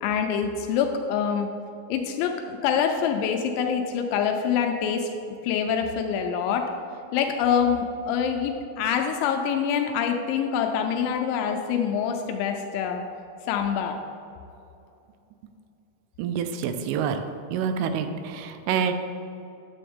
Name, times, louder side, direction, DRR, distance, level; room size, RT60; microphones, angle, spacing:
voice 1, 0.0-1.5 1.9-5.1 5.4-6.6 7.1-13.0 13.5-14.0, left 7 dB, 85° left, 3 dB, 2.8 m, -25 dB
voice 2, 16.2-17.2 17.5-18.9, right 7 dB, 85° right, 8 dB, 3.2 m, -27 dB
10.0 x 7.7 x 3.5 m, 2.7 s
omnidirectional pair, 5.6 m